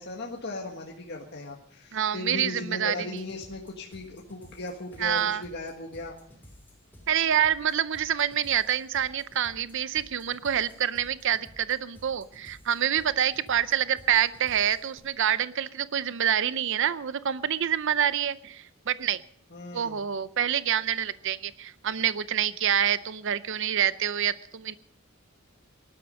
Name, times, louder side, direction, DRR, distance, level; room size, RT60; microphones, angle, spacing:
voice 1, 0.0-6.1 19.5-20.0, left 2 dB, 55° left, 0 dB, 1.7 m, -37 dB
voice 2, 1.9-2.9 5.0-5.4 7.1-19.2 19.7-24.8, right 9 dB, 65° right, 15 dB, 0.6 m, -27 dB
sound 1, 3.1-15.0, equal, 10° left, 3.7 m, -53 dB
19.0 x 12.0 x 5.3 m, 0.64 s
head